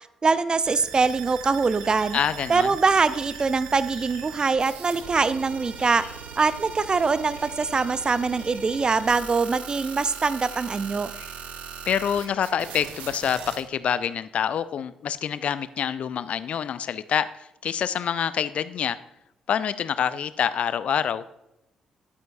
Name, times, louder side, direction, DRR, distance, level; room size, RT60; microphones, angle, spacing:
voice 1, 0.2-2.2 2.5-6.0 6.4-11.1, right 4 dB, 30° right, 15 dB, 0.6 m, -23 dB
sound 1, 0.6-13.6, right 7 dB, 60° right, 1.2 m, -40 dB
sound 2, 1.8-2.1 2.4-2.5 2.7-2.8 3.1-3.5 3.9-4.6 5.7-6.2 7.2-7.8 8.3-9.0 9.7-9.9 10.4-10.6 11.1-11.4 12.2-12.8, left 3 dB, 80° left, 2.0 m, -49 dB
voice 2, 2.1-2.7 11.9-17.3 17.6-19.0 19.5-21.2, left 8 dB, 50° left, 15 dB, 0.5 m, -26 dB
13.0 x 11.0 x 2.6 m, 0.87 s
figure-of-eight pair, 40°, 3 cm